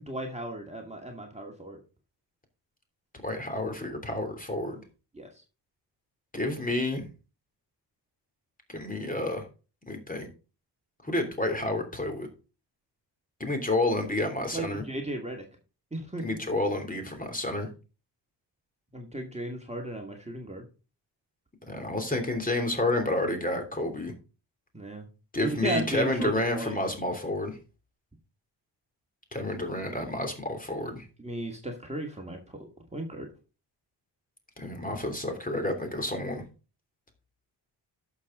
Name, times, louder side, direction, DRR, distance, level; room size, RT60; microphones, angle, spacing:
voice 1, 0.0-1.8 5.1-5.3 14.5-15.4 15.9-16.2 18.9-20.6 24.7-25.1 25.4-26.8 31.2-33.3, right 1 dB, 15° right, 1 dB, 2.2 m, -35 dB
voice 2, 3.2-4.8 6.3-7.1 8.7-9.4 9.9-10.3 11.0-12.3 13.4-14.8 16.2-17.7 21.7-24.1 25.3-27.6 29.3-31.1 34.6-36.4, left 1 dB, 20° left, 5 dB, 3.1 m, -30 dB
11.5 x 6.9 x 3.8 m, 0.33 s
cardioid pair, 75°, 45 cm